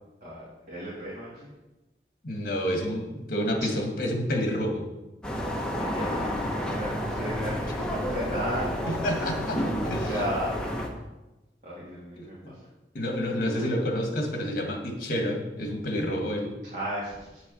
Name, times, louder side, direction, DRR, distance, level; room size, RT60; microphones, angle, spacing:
voice 1, 0.2-1.5 5.6-8.7 10.1-10.5 11.6-12.4 13.5-13.6 16.7-17.4, equal, 45° right, -8 dB, 2.5 m, -35 dB
voice 2, 2.2-4.9 8.8-10.3 12.2-12.5 12.9-16.5, equal, 55° left, 3 dB, 1.8 m, -29 dB
sound 1, 5.2-10.9, equal, 5° left, 1.0 m, -30 dB
8.3 x 7.0 x 5.5 m, 1.0 s
head